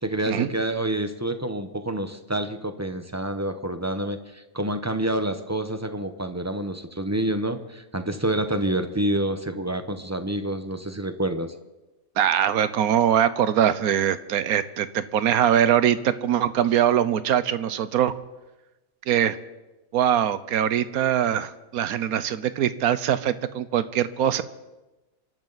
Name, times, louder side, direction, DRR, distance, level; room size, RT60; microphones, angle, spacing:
voice 1, 0.0-11.5, right 1 dB, 15° right, 8 dB, 0.7 m, -28 dB
voice 2, 12.2-18.1 19.1-19.4 19.9-24.4, right 10 dB, 85° right, 14 dB, 1.2 m, -22 dB
28.5 x 12.0 x 4.0 m, 1.1 s
omnidirectional pair, 1.5 m